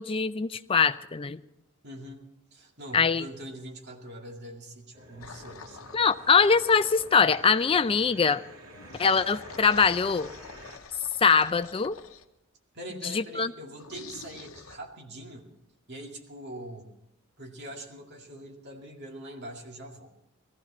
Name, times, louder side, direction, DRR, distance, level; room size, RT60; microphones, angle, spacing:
voice 1, 0.0-1.4 2.9-3.2 5.9-8.4 9.0-10.3 11.2-12.0 13.0-13.5, left 5 dB, 25° left, 13 dB, 0.4 m, -23 dB
voice 2, 1.8-2.2 2.5-6.0 12.7-15.5 15.9-16.9 17.4-20.1, right 1 dB, 55° right, 1 dB, 2.2 m, -43 dB
sound 1, 4.9-10.8, right 1 dB, 80° right, 2.7 m, -49 dB
sound 2, 5.2-7.6 8.7-12.3 13.8-14.8, left 5 dB, 75° left, 0.8 m, -46 dB
18.5 x 14.5 x 4.3 m, 0.85 s
head